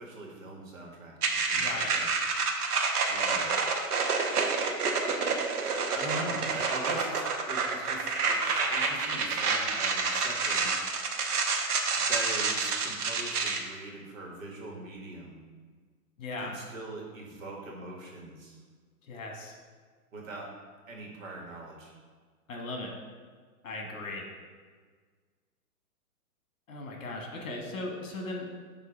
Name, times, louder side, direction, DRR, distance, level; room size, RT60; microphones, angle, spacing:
voice 1, 0.0-2.1 3.1-3.5 5.9-10.7 12.0-15.4 16.4-18.6 20.1-20.5 20.9-21.9, right 2 dB, 60° right, -1 dB, 1.6 m, -41 dB
sound 1, 1.2-13.6, right 4 dB, 80° right, 1.0 m, -28 dB
voice 2, 1.5-1.9 6.4-6.6 16.2-16.5 19.0-19.5 22.5-22.9 23.6-24.2 26.7-28.5, left 2 dB, 60° left, 1 dB, 1.3 m, -37 dB
7.7 x 2.8 x 4.9 m, 1.5 s
hypercardioid pair, 165°, 45 cm